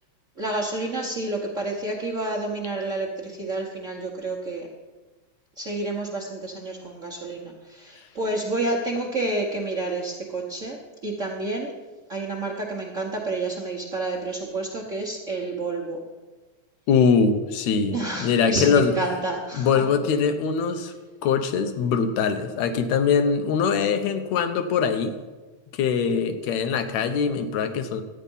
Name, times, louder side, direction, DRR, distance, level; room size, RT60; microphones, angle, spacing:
voice 1, 0.4-4.7 5.6-11.7 12.1-16.0 17.9-19.8, right 2 dB, 90° right, -3 dB, 0.6 m, -29 dB
voice 2, 16.9-18.9 19.6-20.9 21.2-25.2 25.7-28.0, left 6 dB, 75° left, 8 dB, 2.1 m, -22 dB
12.5 x 9.0 x 5.5 m, 1.3 s
omnidirectional pair, 3.4 m